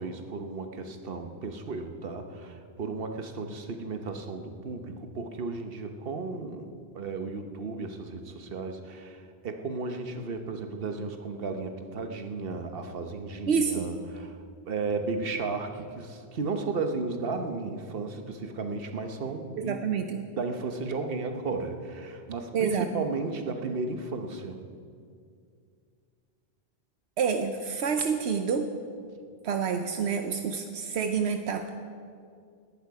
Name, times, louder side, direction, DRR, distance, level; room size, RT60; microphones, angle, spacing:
voice 1, 0.0-19.8 20.3-24.6, right 4 dB, 60° right, 6 dB, 1.2 m, -34 dB
voice 2, 13.5-13.9 19.5-20.2 22.5-22.9 27.2-28.7 29.4-31.7, right 6 dB, 80° right, 6 dB, 1.0 m, -28 dB
19.0 x 11.0 x 4.8 m, 2.3 s
omnidirectional pair, 1.1 m